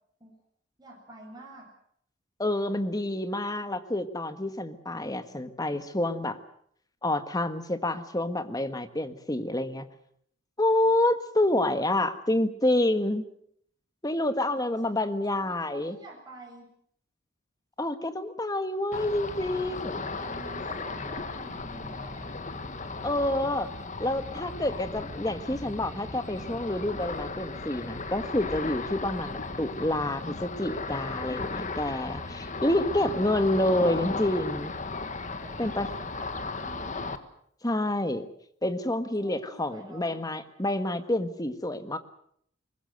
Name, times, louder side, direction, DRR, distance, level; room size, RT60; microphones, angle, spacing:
voice 1, 0.8-1.7 14.4-15.0 15.4-16.7 19.8-22.3 32.3-32.6 35.4-37.2 39.2-40.2, right 2 dB, 20° right, -1 dB, 7.7 m, -49 dB
voice 2, 2.4-6.4 7.0-9.8 10.6-13.2 14.0-16.0 17.8-20.0 23.0-23.7 24.0-34.7 35.6-35.9 37.6-38.3 38.6-42.0, left 1 dB, 20° left, 10 dB, 1.5 m, -28 dB
Ocean, 18.9-37.2, left 3 dB, 35° left, 1.6 m, -36 dB
23.0 x 21.0 x 7.9 m, 0.67 s
head